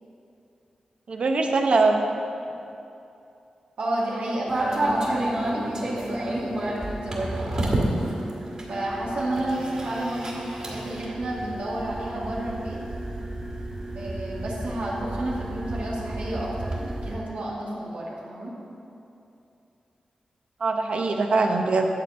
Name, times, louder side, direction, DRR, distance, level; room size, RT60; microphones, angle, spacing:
voice 1, 1.1-2.0 20.6-21.9, right 3 dB, 60° right, 3 dB, 0.8 m, -22 dB
voice 2, 3.8-8.1 8.7-12.8 13.9-16.7 17.0-18.5, right 1 dB, 90° right, -6 dB, 1.9 m, -31 dB
sound 1, 4.5-17.1, right 1 dB, 40° right, 1.9 m, -30 dB
10.5 x 4.4 x 7.5 m, 2.7 s
wide cardioid pair, 110°, 2 cm